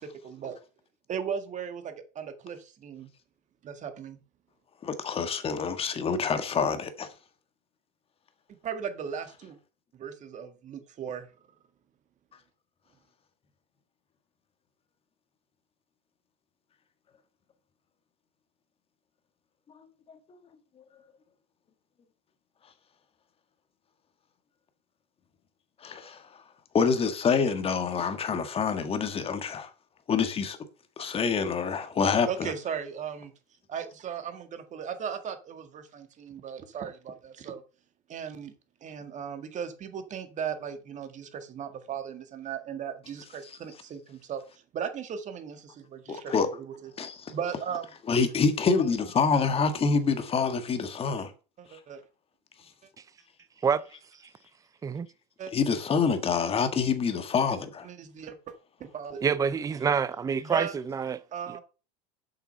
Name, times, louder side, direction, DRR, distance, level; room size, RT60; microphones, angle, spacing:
voice 1, 0.0-0.6 1.1-3.1 3.6-4.2 8.6-9.6 9.9-11.3 32.3-33.3 33.7-37.6 38.1-38.5 38.8-44.4 44.7-46.9 47.3-47.9 51.2-51.3 51.6-52.0 55.4-55.5 57.8-58.5 58.9-59.2 60.4-60.7 61.3-61.6, right 7 dB, 35° right, 1.8 m, -37 dB
voice 2, 4.8-7.1 25.8-26.3 26.7-29.7 30.1-30.6 31.0-32.5 43.4-43.6 46.1-46.5 47.0-47.3 48.1-51.3 55.5-57.9, left 5 dB, 25° left, 1.7 m, -26 dB
voice 3, 59.2-61.2 61.5-61.6, right 6 dB, 15° right, 0.6 m, -27 dB
7.6 x 5.8 x 5.5 m
hypercardioid pair, 100°, 21 cm